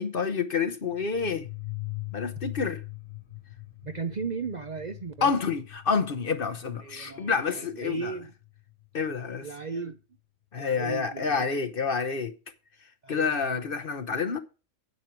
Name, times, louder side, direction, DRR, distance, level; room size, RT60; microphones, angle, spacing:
voice 1, 0.0-1.5 2.1-2.8 5.2-8.1 8.9-9.5 10.5-12.3 13.1-14.4, left 5 dB, 50° left, 1.0 m, -28 dB
sound 1, 0.9-9.3, left 24 dB, 75° left, 1.3 m, -42 dB
voice 2, 3.8-5.3 6.8-8.3 9.4-10.0 10.6-11.5 13.0-13.7, right 5 dB, 45° right, 0.6 m, -36 dB
9.7 x 8.3 x 4.5 m
omnidirectional pair, 1.4 m